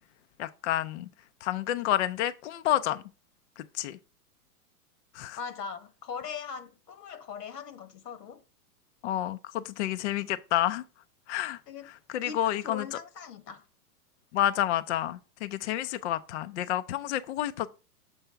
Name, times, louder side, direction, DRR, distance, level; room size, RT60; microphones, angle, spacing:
voice 1, 0.4-1.1 1.4-3.0 3.6-4.0 5.1-5.4 9.0-10.8 11.3-11.6 12.1-13.0 14.3-17.7, left 13 dB, 50° left, 0.4 m, -29 dB
voice 2, 5.4-8.4 11.7-11.9 12.2-13.6, left 6 dB, 80° left, 1.4 m, -40 dB
6.9 x 3.5 x 5.6 m
hypercardioid pair, 135°, 47 cm